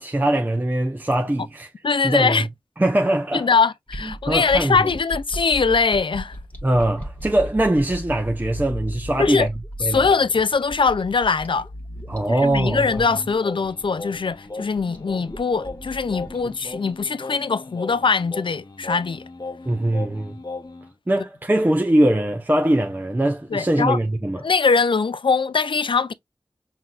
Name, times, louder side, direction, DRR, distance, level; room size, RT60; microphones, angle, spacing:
voice 1, 0.0-1.7 2.0-2.5 2.8-3.5 4.1-4.9 6.6-9.5 9.8-10.0 12.1-12.9 19.6-20.4 21.1-24.4, right 1 dB, 20° right, 0.6 m, -21 dB
voice 2, 1.8-2.5 3.3-6.4 9.2-9.5 9.9-11.7 12.3-19.2 23.5-24.0 24.4-26.1, left 5 dB, 65° left, 0.4 m, -21 dB
sound 1, 3.9-17.0, equal, 20° left, 1.3 m, -36 dB
Singing, 12.3-20.9, left 3 dB, 45° left, 0.8 m, -37 dB
5.7 x 2.7 x 2.4 m
wide cardioid pair, 60°, 9 cm